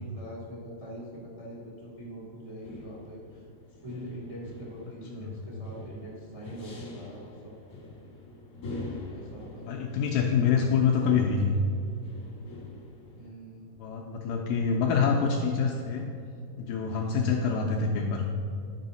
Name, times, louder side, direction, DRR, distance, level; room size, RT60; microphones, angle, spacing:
voice 1, 0.0-3.4 3.8-7.5 9.1-9.8 13.1-13.7, equal, 70° right, -5 dB, 0.3 m, -43 dB
sound 1, 1.8-13.3, left 2 dB, 50° left, 1.0 m, -45 dB
voice 2, 9.6-11.6 13.8-16.1 16.6-18.3, left 6 dB, 85° left, 0 dB, 2.0 m, -26 dB
11.0 x 5.6 x 4.0 m, 2.3 s
omnidirectional pair, 4.5 m